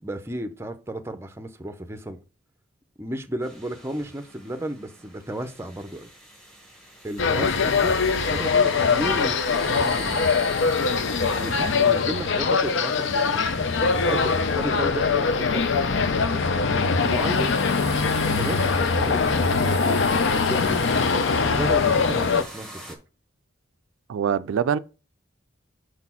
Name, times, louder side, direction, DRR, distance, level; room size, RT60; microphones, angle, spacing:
voice 1, 0.0-2.2 3.0-6.1 7.0-8.0 8.3-10.3 11.4-17.6 18.3-21.1 21.4-22.8, right 1 dB, 15° right, 0.5 m, -34 dB
sound 1, 3.4-22.9, right 1 dB, ahead, 1.2 m, -42 dB
sound 2, 7.2-22.4, left 4 dB, 65° left, 0.5 m, -22 dB
voice 2, 24.1-24.8, right 7 dB, 85° right, 0.3 m, -23 dB
4.9 x 4.2 x 5.6 m
head